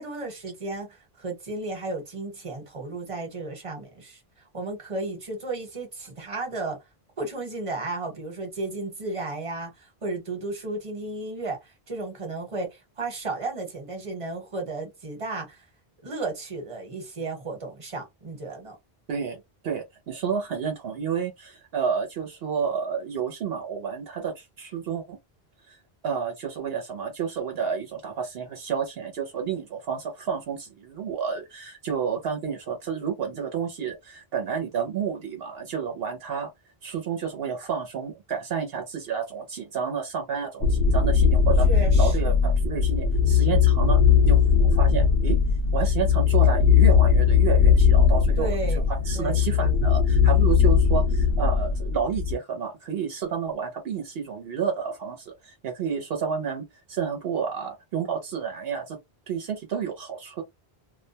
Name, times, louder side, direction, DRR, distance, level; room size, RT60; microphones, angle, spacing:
voice 1, 0.0-4.2 4.5-6.8 7.2-9.7 10.0-11.6 11.9-15.6 16.0-18.8 41.7-42.1 48.4-48.8 49.1-49.8, right 2 dB, 35° right, 1.1 m, -33 dB
voice 2, 19.6-25.2 25.7-25.8 26.0-36.5 36.8-41.7 42.0-45.4 45.7-59.0 59.3-60.4, right 7 dB, 75° right, 0.9 m, -30 dB
sound 1, 40.6-52.3, left 6 dB, 70° left, 0.9 m, -19 dB
2.2 x 2.2 x 2.7 m
omnidirectional pair, 1.0 m